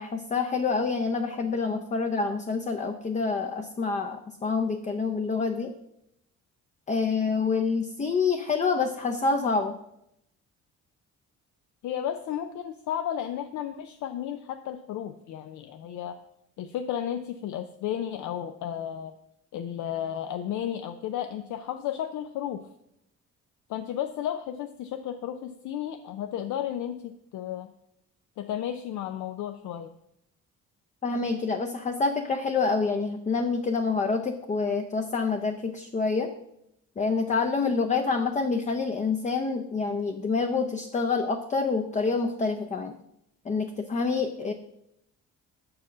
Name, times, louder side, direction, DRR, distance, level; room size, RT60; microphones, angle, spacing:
voice 1, 0.0-5.7 6.9-9.7 31.0-36.3 37.0-42.9 43.4-44.5, left 4 dB, 25° left, 5 dB, 0.5 m, -27 dB
voice 2, 11.8-16.2 16.6-19.1 19.5-22.6 23.7-27.7 28.4-29.9, left 10 dB, 75° left, 8 dB, 0.5 m, -33 dB
6.1 x 4.7 x 6.0 m, 0.80 s
cardioid pair, 90°, 30 cm